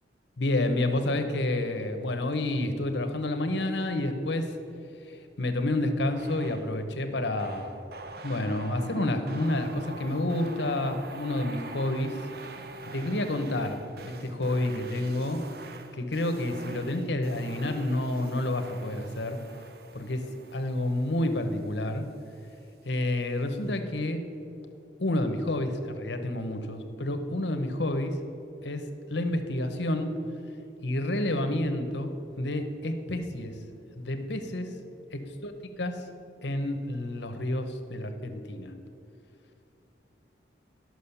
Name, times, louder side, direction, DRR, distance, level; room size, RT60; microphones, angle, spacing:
voice 1, 0.4-4.6 5.0-7.8 8.2-12.2 12.8-15.4 15.9-19.4 19.9-20.2 20.5-22.0 22.8-24.2 25.0-28.2 28.6-30.1 30.8-33.6 34.0-34.7 35.4-35.5 35.8-36.1 36.4-38.7, left 1 dB, 70° left, 7 dB, 1.0 m, -29 dB
sound 1, 6.2-6.8 7.4-22.1, right 3 dB, 55° right, 0.7 m, -45 dB
11.5 x 6.2 x 7.0 m, 2.7 s
head